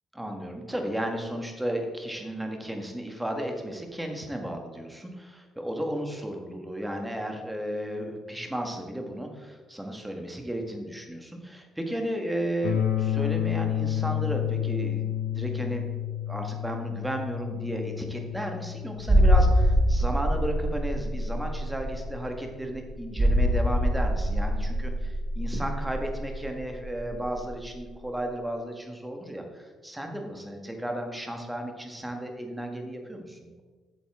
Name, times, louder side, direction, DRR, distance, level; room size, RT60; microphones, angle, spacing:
voice 1, 0.1-15.8 16.3-33.6, right 1 dB, 5° right, 3 dB, 1.5 m, -34 dB
sound 1, 12.6-22.6, left 10 dB, 85° left, 1.1 m, -31 dB
sound 2, 19.0-27.5 27.7-27.9, equal, 25° right, 2.5 m, -24 dB
9.0 x 7.0 x 3.6 m, 1.4 s
cardioid pair, 90°, 0 cm